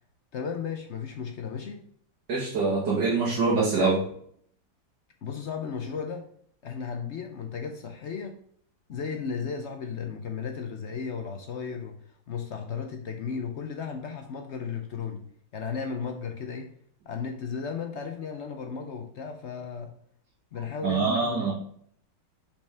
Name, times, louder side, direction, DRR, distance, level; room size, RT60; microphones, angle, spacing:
voice 1, 0.3-1.8 5.2-6.2 6.6-8.4 8.9-12.0 12.3-15.2 15.5-16.7 17.1-19.9 20.5-21.5, left 6 dB, 65° left, 4 dB, 0.7 m, -35 dB
voice 2, 2.3-4.0 20.8-21.5, right 4 dB, 65° right, -5 dB, 1.9 m, -24 dB
5.3 x 5.2 x 3.5 m, 0.63 s
omnidirectional pair, 2.0 m